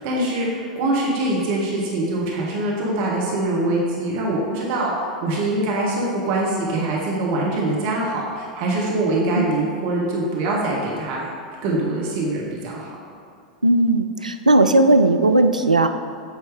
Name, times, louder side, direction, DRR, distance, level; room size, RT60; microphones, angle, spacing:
voice 1, 0.0-11.3 11.6-12.9, right 2 dB, 45° right, -4 dB, 1.3 m, -23 dB
voice 2, 13.6-15.9, right 2 dB, 85° right, 7 dB, 0.4 m, -16 dB
8.4 x 3.1 x 4.9 m, 2.3 s
figure-of-eight pair, 90°, 4 cm